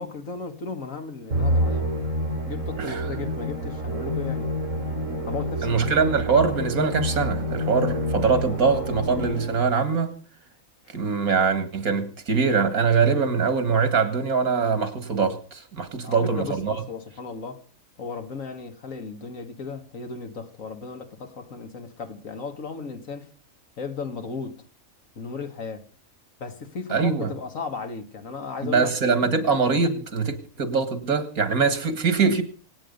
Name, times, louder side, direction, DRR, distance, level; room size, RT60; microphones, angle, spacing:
voice 1, 0.0-1.9 2.5-4.5 5.3-5.8 16.0-17.6 18.0-23.3 23.8-24.6 25.2-25.9 26.4-28.9, left 5 dB, 70° left, 2.0 m, -35 dB
Musical instrument, 1.3-9.8, equal, 65° right, 3.7 m, -28 dB
voice 2, 5.6-10.1 10.9-16.8 26.9-27.3 28.6-32.4, right 5 dB, 85° right, 2.4 m, -23 dB
26.0 x 8.8 x 5.3 m
omnidirectional pair, 1.5 m